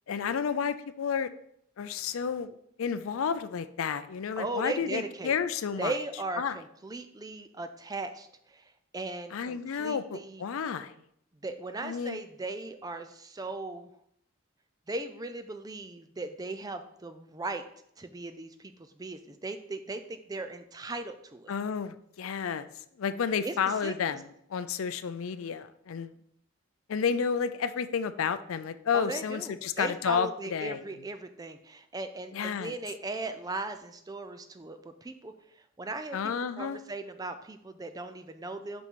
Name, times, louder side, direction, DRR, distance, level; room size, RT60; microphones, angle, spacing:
voice 1, 0.1-1.3 1.8-5.9 6.4-6.5 9.3-10.9 11.8-12.2 21.5-22.7 23.0-26.1 26.9-30.8 32.3-32.7 36.1-36.8, left 6 dB, 70° left, 12 dB, 0.4 m, -31 dB
voice 2, 4.4-5.3 5.8-10.4 11.4-13.9 14.9-17.6 18.0-21.5 23.4-23.5 23.8-24.2 28.9-36.2 36.6-38.9, right 2 dB, 15° right, 9 dB, 0.4 m, -38 dB
5.7 x 5.4 x 4.5 m, 0.72 s
head